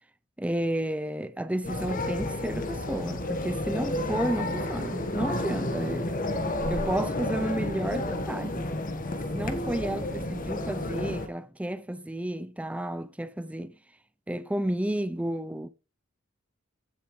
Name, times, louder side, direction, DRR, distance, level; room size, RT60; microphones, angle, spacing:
voice 1, 0.4-6.1 6.7-8.7 9.3-13.8 14.3-15.7, right 1 dB, 5° right, 0.5 m, -32 dB
sound 1, 1.6-11.3, left 1 dB, 40° left, 1.4 m, -31 dB
16.0 x 6.9 x 3.2 m
head